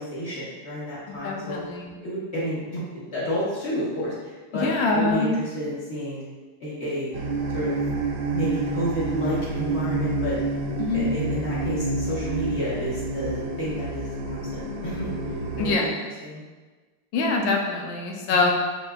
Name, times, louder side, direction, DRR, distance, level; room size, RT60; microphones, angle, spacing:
voice 1, 0.0-1.6 2.0-6.2 6.6-7.2 7.5-7.8 8.3-10.3 10.9-15.1 15.6-16.4 18.3-18.5, equal, 35° left, -8 dB, 1.2 m, -31 dB
voice 2, 1.1-1.9 4.5-5.3 10.8-11.1 15.6-15.8 17.1-18.5, left 3 dB, 75° left, 0 dB, 1.3 m, -24 dB
sound 1, 7.1-15.7, right 3 dB, 75° right, 1.1 m, -28 dB
4.9 x 3.5 x 2.3 m, 1.3 s
omnidirectional pair, 2.3 m